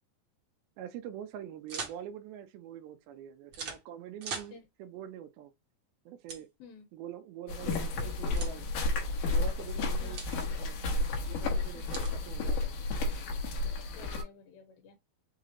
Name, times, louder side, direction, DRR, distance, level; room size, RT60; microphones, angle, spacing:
voice 1, 0.8-5.5 6.1-6.5 6.9-8.7 9.3-11.0 11.3-12.7, right 10 dB, 85° right, 2.6 m, -45 dB
sound 1, 1.7-2.0 3.5-3.8 4.2-4.5 6.3-6.4 8.4-8.6 10.1-10.4 11.9-12.2, right 5 dB, 60° right, 1.4 m, -39 dB
sound 2, 7.5-14.2, left 2 dB, 65° left, 2.5 m, -32 dB
voice 2, 7.6-8.2 10.0-10.2 11.7-12.0 13.9-15.0, left 5 dB, 85° left, 2.9 m, -49 dB
6.5 x 2.5 x 3.0 m
omnidirectional pair, 4.2 m